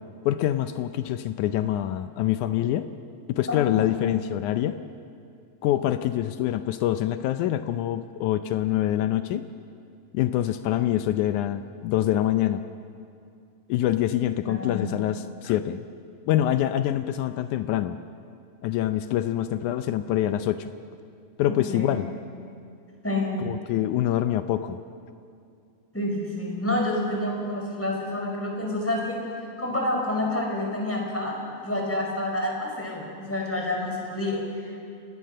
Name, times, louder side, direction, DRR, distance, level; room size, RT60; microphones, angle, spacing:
voice 1, 0.2-2.9 3.3-4.8 5.6-9.5 10.1-12.6 13.7-15.8 16.3-17.9 18.6-20.7 21.4-22.1 23.4-24.8, left 12 dB, 90° left, 10 dB, 1.7 m, -25 dB
voice 2, 3.5-3.9 14.4-15.0 21.5-22.0 23.0-23.5 25.9-29.2 29.6-31.4 31.6-34.7, left 1 dB, 5° left, -1 dB, 4.3 m, -28 dB
29.5 x 18.5 x 6.5 m, 2.4 s
omnidirectional pair, 4.3 m